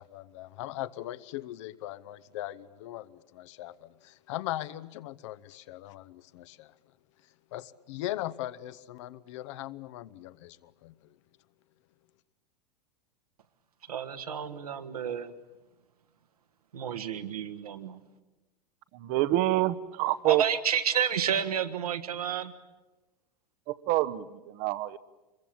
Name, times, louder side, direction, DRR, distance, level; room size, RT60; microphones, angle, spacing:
voice 1, 0.0-6.8 7.5-11.2, left 14 dB, 50° left, 14 dB, 0.9 m, -39 dB
voice 2, 13.9-15.3 16.7-17.9 20.2-22.5, right 8 dB, 70° right, 7 dB, 1.7 m, -30 dB
voice 3, 18.9-20.4 23.7-25.0, right 15 dB, 40° right, 14 dB, 1.0 m, -27 dB
27.0 x 22.5 x 8.7 m, 1.1 s
figure-of-eight pair, 90°, 20 cm